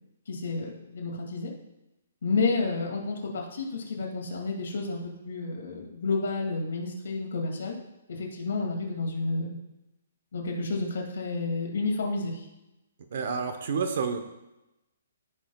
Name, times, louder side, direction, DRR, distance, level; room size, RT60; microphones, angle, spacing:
voice 1, 0.3-1.5 2.2-7.8 8.1-9.5 10.3-12.5, left 3 dB, 65° left, 0 dB, 2.2 m, -30 dB
voice 2, 13.1-14.2, right 5 dB, 45° right, 7 dB, 0.8 m, -29 dB
15.5 x 5.6 x 2.3 m, 0.95 s
hypercardioid pair, 175°, 0 cm